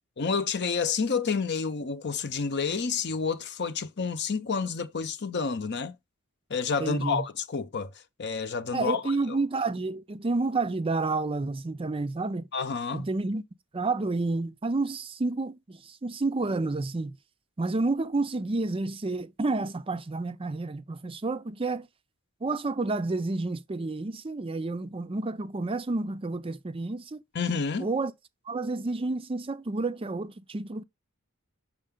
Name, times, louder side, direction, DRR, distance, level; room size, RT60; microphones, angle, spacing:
voice 1, 0.2-5.9 6.5-7.9 8.2-9.0 12.5-13.1 27.3-27.9, left 5 dB, 55° left, 0.8 m, -29 dB
voice 2, 6.8-7.2 8.7-12.5 12.9-13.4 13.7-17.2 17.6-21.9 22.4-27.2 27.8-28.1 28.5-30.8, right 3 dB, 25° right, 0.5 m, -30 dB
6.5 x 5.7 x 3.7 m
head